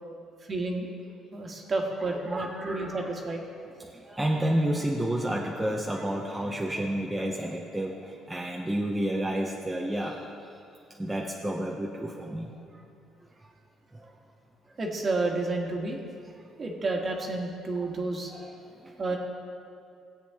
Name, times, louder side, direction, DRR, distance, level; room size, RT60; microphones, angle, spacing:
voice 1, 0.5-0.9 1.3-3.4 14.8-16.0 16.6-18.3 19.0-19.2, right 2 dB, 35° right, 1 dB, 1.5 m, -30 dB
voice 2, 2.3-3.1 3.8-10.6 10.9-12.8 13.4-13.5 13.9-14.1 14.7-14.8 17.8-17.9 18.3-19.0, right 1 dB, 10° right, -2 dB, 0.7 m, -31 dB
17.0 x 8.2 x 3.6 m, 2.5 s
cardioid pair, 115°, 0 cm